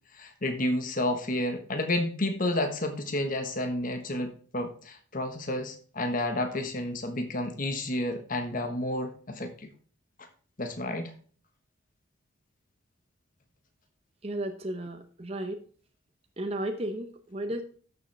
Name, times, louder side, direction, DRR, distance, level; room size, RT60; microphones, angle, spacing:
voice 1, 0.1-9.7 10.6-11.1, left 1 dB, 40° left, 7 dB, 1.3 m, -30 dB
voice 2, 14.2-15.6 16.4-17.6, right 1 dB, 30° right, 6 dB, 0.8 m, -34 dB
12.5 x 7.1 x 3.4 m, 0.43 s
head